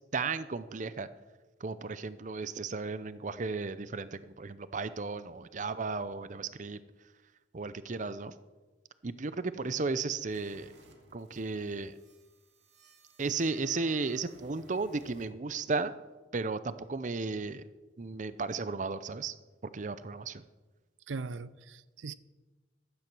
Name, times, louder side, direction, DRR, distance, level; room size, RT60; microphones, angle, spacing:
voice 1, 0.1-1.1 1.6-6.8 7.5-8.3 9.0-10.7 11.1-12.0 13.2-15.9 16.3-17.6 18.0-19.3 19.7-20.4, right 4 dB, 40° right, 0.6 m, -34 dB
sound 1, 10.3-15.3, right 1 dB, 65° right, 2.3 m, -57 dB
voice 2, 21.1-22.1, right 4 dB, 90° right, 0.5 m, -39 dB
15.0 x 12.0 x 6.1 m
head